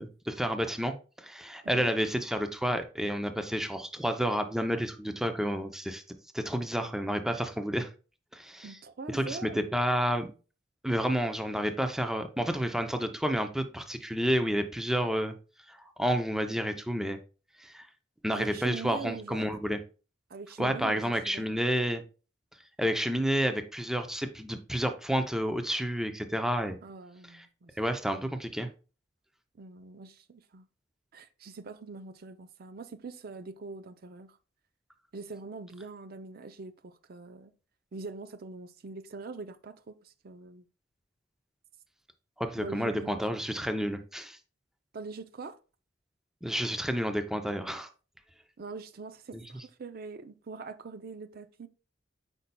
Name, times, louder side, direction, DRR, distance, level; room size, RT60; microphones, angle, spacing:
voice 1, 0.0-6.0 6.3-7.9 8.3-8.8 9.1-10.3 10.8-15.3 15.7-17.2 17.6-17.9 18.2-19.8 20.6-22.0 22.8-26.8 27.8-28.7 42.4-44.4 46.4-47.9, equal, 5° right, 0.5 m, -30 dB
voice 2, 8.6-9.7 18.3-19.5 20.3-21.5 26.8-27.7 29.6-30.7 31.1-34.4 35.1-37.5 37.9-40.6 42.6-43.2 44.9-45.6 48.6-51.7, right 4 dB, 55° right, 0.5 m, -43 dB
8.3 x 5.3 x 2.2 m
head